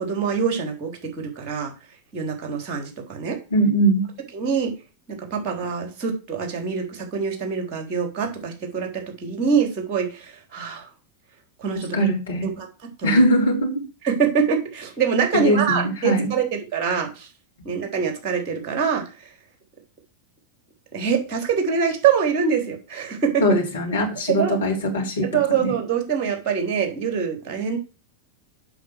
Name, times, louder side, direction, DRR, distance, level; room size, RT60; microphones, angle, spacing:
voice 1, 0.0-1.7 2.1-3.4 4.3-4.7 5.3-10.9 11.6-12.0 12.4-12.7 13.0-13.2 14.0-17.3 17.6-19.3 20.9-23.4 24.3-24.6 25.3-27.8, right 6 dB, 35° right, 4 dB, 3.7 m, -24 dB
voice 2, 3.5-4.1 11.9-12.5 13.0-13.7 15.3-16.3 23.4-25.7, equal, 70° left, 0 dB, 3.4 m, -21 dB
8.1 x 6.2 x 6.5 m, 0.32 s
figure-of-eight pair, 90°, 0 cm